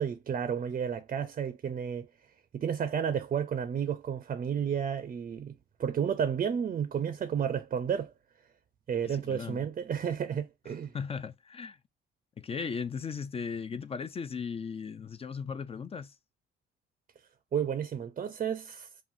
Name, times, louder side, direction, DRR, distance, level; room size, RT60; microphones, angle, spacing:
voice 1, 0.0-2.1 2.5-5.5 5.8-8.1 8.9-10.9 17.5-18.9, right 8 dB, 40° right, 0.5 m, -31 dB
voice 2, 9.0-9.6 10.9-11.8 12.4-16.1, left 6 dB, 30° left, 0.4 m, -37 dB
5.5 x 2.6 x 2.5 m
cardioid pair, 115°, 21 cm